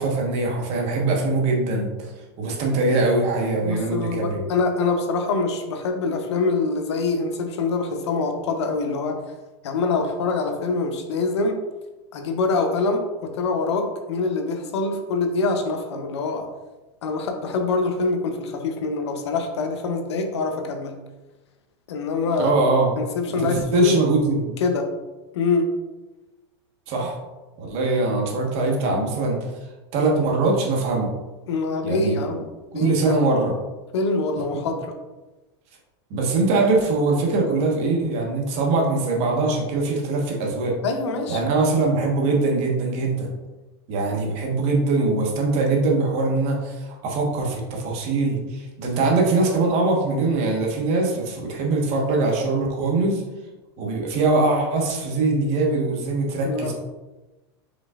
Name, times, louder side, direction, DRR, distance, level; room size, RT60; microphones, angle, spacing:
voice 1, 0.0-2.1 2.4-4.4 22.4-22.9 23.3-24.5 26.9-27.1 27.6-29.4 29.9-31.1 31.8-32.4 32.7-33.5 34.5-34.6 36.1-40.8 41.3-43.3 43.9-53.2 53.8-56.7, right 3 dB, 45° right, 0 dB, 1.2 m, -22 dB
voice 2, 3.6-9.2 9.6-11.6 12.1-16.5 17.0-21.0 21.9-22.6 23.0-24.1 24.6-24.9 25.3-25.7 31.5-32.4 32.7-33.2 33.9-35.0 40.8-41.4 56.4-56.7, left 3 dB, 90° left, 5 dB, 0.8 m, -24 dB
5.2 x 4.0 x 2.4 m, 1.1 s
supercardioid pair, 135°, 14 cm